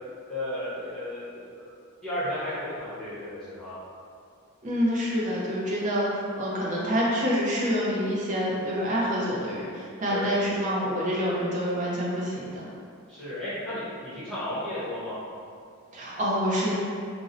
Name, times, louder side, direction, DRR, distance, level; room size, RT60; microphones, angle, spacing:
voice 1, 0.3-1.7 2.0-3.8 10.1-10.4 13.1-15.2, left 1 dB, 5° left, -15 dB, 0.8 m, -34 dB
voice 2, 4.6-12.7 15.9-16.7, equal, 35° right, -5 dB, 0.6 m, -27 dB
2.6 x 2.0 x 3.8 m, 2.4 s
head